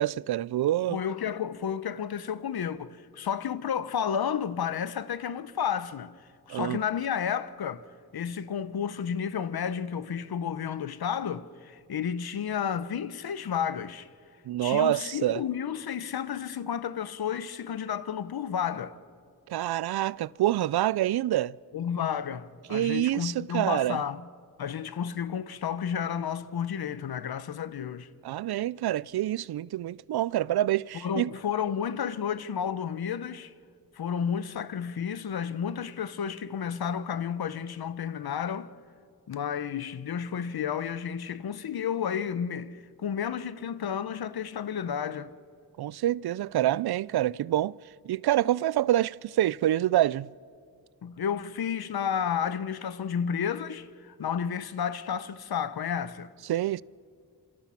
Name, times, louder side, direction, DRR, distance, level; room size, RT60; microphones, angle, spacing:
voice 1, 0.0-1.0 6.5-6.8 14.5-15.4 19.5-21.6 22.7-24.0 28.2-31.3 45.8-47.8 48.0-50.3 56.4-56.8, right 13 dB, 80° right, 0.5 m, -26 dB
voice 2, 0.9-6.1 6.5-7.8 8.1-14.1 14.6-19.0 21.7-24.2 24.6-28.1 31.0-33.5 34.0-38.7 39.3-45.3 51.0-56.3, left 8 dB, 75° left, 1.1 m, -31 dB
27.0 x 25.0 x 5.9 m
cardioid pair, 70°, 37 cm